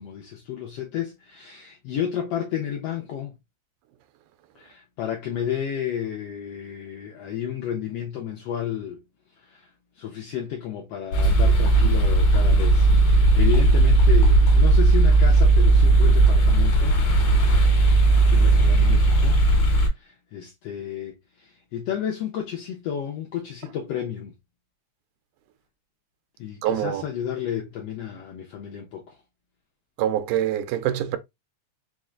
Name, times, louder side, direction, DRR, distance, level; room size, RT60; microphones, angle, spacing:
voice 1, 0.0-3.4 4.5-9.0 9.4-17.0 18.3-19.4 19.9-24.4 26.4-29.2, left 9 dB, 80° left, 1.4 m, -32 dB
sound 1, 11.1-19.9, right 2 dB, 60° left, 1.9 m, -17 dB
voice 2, 26.6-27.0 30.0-31.2, right 11 dB, 90° right, 2.1 m, -25 dB
4.7 x 3.1 x 2.4 m
omnidirectional pair, 3.4 m